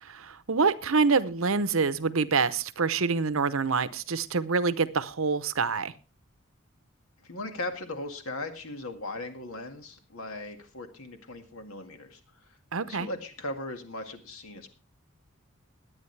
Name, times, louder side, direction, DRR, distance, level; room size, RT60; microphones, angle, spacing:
voice 1, 0.0-5.9 12.7-13.1, right 4 dB, 70° right, 14 dB, 0.8 m, -26 dB
voice 2, 7.2-12.2 12.8-14.7, left 2 dB, 80° left, 6 dB, 2.0 m, -38 dB
21.0 x 9.0 x 3.3 m, 0.34 s
head